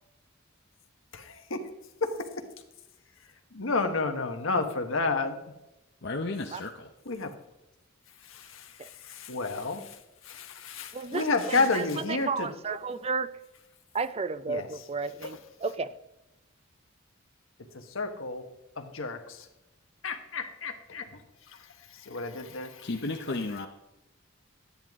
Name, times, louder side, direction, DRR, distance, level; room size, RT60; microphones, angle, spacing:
voice 1, 1.1-1.6 2.0-2.1 3.5-5.4 7.1-7.3 8.3-10.0 10.2-12.5 14.5-14.7 15.2-15.3 17.7-18.4 18.8-19.4 20.0-21.1 22.0-22.9, left 3 dB, 70° left, 6 dB, 1.3 m, -31 dB
voice 2, 6.0-6.9 22.8-23.7, left 2 dB, 55° left, 3 dB, 0.8 m, -33 dB
voice 3, 10.9-13.3 13.9-15.9, right 4 dB, 30° right, 14 dB, 0.4 m, -33 dB
11.0 x 10.0 x 3.6 m, 0.93 s
head